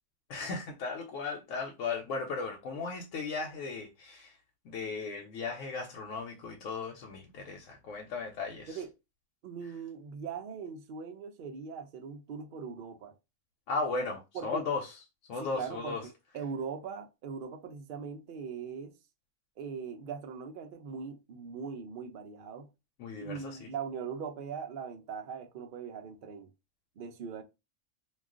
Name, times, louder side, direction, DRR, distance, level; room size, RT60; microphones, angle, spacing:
voice 1, 0.3-4.4 4.6-8.8 13.7-15.0 15.3-16.0 23.0-23.7, left 4 dB, 85° left, 1.0 m, -36 dB
voice 2, 9.4-13.1 14.3-14.7 15.4-16.0 16.3-18.9 19.6-22.7 23.2-26.5 27.0-27.4, right 6 dB, 60° right, 0.6 m, -40 dB
2.3 x 2.3 x 3.6 m
omnidirectional pair, 1.3 m